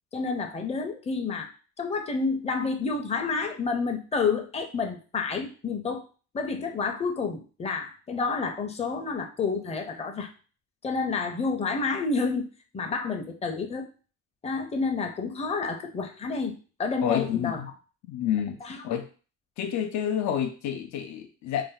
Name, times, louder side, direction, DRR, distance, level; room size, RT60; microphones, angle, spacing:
voice 1, 0.1-1.5 1.8-6.0 6.3-10.3 10.8-12.5 12.7-13.9 14.4-16.5 16.8-17.6 18.6-19.0, left 4 dB, 20° left, 4 dB, 0.5 m, -29 dB
voice 2, 17.0-17.7 18.1-19.1 19.6-21.6, left 9 dB, 70° left, 6 dB, 0.5 m, -29 dB
2.6 x 2.0 x 3.8 m, 0.36 s
cardioid pair, 90°, 30 cm